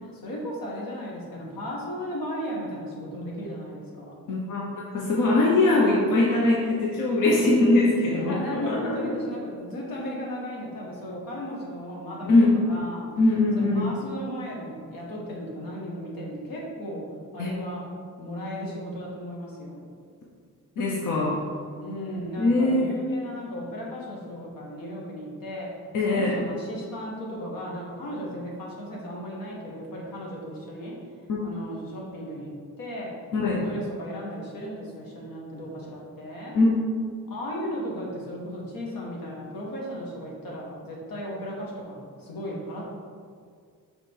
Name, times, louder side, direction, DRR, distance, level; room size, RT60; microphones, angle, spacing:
voice 1, 0.0-4.1 8.1-13.0 13.6-17.0 17.3-17.8 18.2-19.9 21.7-25.7 26.1-30.9 31.4-33.1 33.4-36.6 37.3-42.8, equal, 90° left, -3 dB, 1.5 m, -36 dB
voice 2, 4.3-9.1 12.3-12.6 13.2-13.9 17.4-17.5 20.8-21.4 22.4-22.9 25.9-26.4 31.3-31.4 33.3-33.6 36.5-36.7, left 2 dB, 65° left, -3 dB, 0.9 m, -22 dB
5.4 x 4.0 x 4.6 m, 2.1 s
cardioid pair, 110°, 33 cm